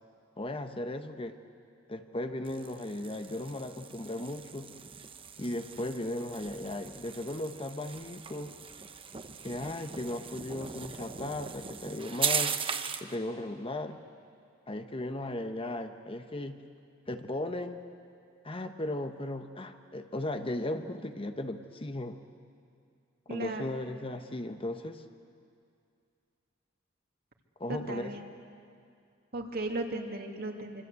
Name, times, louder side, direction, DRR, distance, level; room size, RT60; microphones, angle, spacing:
voice 1, 0.4-1.4 1.9-4.7 5.4-8.5 9.4-12.6 13.0-14.0 14.7-16.6 17.1-17.8 18.4-22.2 23.3-25.0 27.6-28.1, left 1 dB, 25° left, 7 dB, 1.1 m, -36 dB
sound 1, 2.4-13.2, right 7 dB, 25° right, 0.9 m, -38 dB
voice 2, 23.3-23.7 27.7-28.3 29.3-30.8, right 2 dB, 50° right, 3 dB, 2.4 m, -36 dB
25.5 x 25.5 x 8.3 m, 2.4 s
head